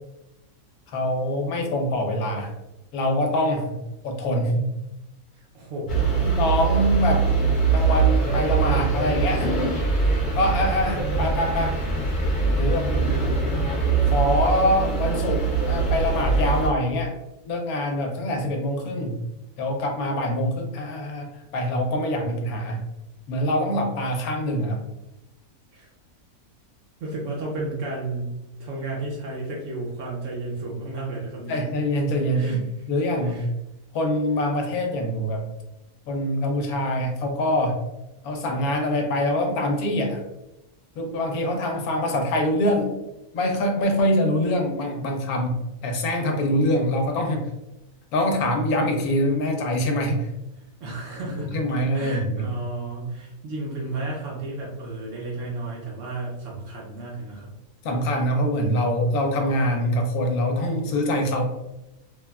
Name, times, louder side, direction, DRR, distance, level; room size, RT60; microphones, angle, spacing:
voice 1, 0.9-2.5 2.9-3.8 4.0-4.7 6.2-7.3 7.7-9.6 10.4-11.8 12.5-12.9 14.1-17.1 17.5-19.2 19.6-21.3 21.5-22.8 23.3-24.8 31.5-32.6 32.9-33.5 33.9-35.4 36.1-37.8 38.2-40.2 41.0-42.9 43.3-45.6 45.8-47.4 48.1-50.3 51.5-52.4 57.8-61.4, left 1 dB, 80° left, 3 dB, 1.1 m, -24 dB
voice 2, 5.4-6.3 12.9-13.2 25.7-25.9 27.0-28.3 28.6-31.6 32.3-32.9 33.2-33.5 41.7-42.2 49.3-49.4 50.8-51.6 51.9-57.5, right 2 dB, 65° right, -3 dB, 0.9 m, -33 dB
sound 1, 5.9-16.7, right 4 dB, 45° left, 0.8 m, -22 dB
3.2 x 2.2 x 2.2 m, 0.95 s
omnidirectional pair, 1.6 m